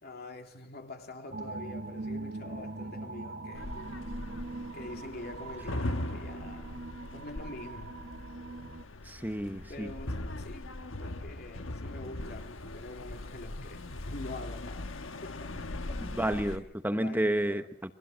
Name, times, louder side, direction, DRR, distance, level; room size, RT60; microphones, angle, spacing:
voice 1, 0.0-3.7 4.7-6.9 7.1-7.9 9.7-10.7 11.0-14.9 15.2-15.5 15.9-16.0 16.4-16.6 16.9-17.7, left 2 dB, 50° left, 2.9 m, -45 dB
sound 1, 1.3-8.8, right 2 dB, 50° right, 1.1 m, -41 dB
sound 2, 3.5-16.6, left 1 dB, 75° left, 1.3 m, -40 dB
voice 2, 9.0-9.9 16.1-17.9, right 1 dB, 10° right, 1.1 m, -31 dB
29.5 x 23.5 x 6.3 m
head